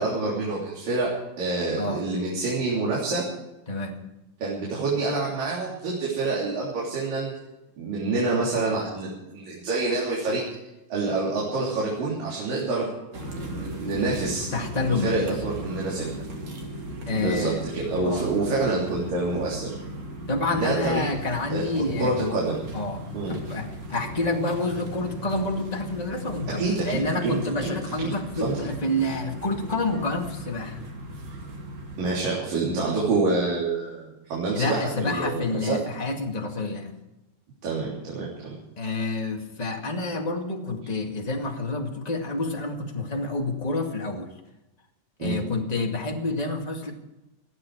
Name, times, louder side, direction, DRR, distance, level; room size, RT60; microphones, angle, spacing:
voice 1, 0.0-3.3 4.4-7.3 7.8-10.4 10.9-12.9 13.5-14.5 14.9-16.2 17.1-19.7 20.5-21.1 21.5-22.6 23.1-23.4 26.5-27.8 28.0-28.1 28.4-28.5 32.0-35.8 37.6-38.6 45.2-45.4, right 3 dB, 75° right, -5 dB, 5.0 m, -27 dB
voice 2, 3.7-4.0 14.5-15.3 17.1-17.6 18.0-18.3 20.3-22.4 22.7-30.8 34.5-37.0 38.8-44.3 45.2-46.9, left 2 dB, 15° left, 1 dB, 1.4 m, -28 dB
sound 1, 13.1-32.3, right 1 dB, 50° right, 3.7 m, -37 dB
20.0 x 13.5 x 4.8 m, 0.96 s
omnidirectional pair, 3.9 m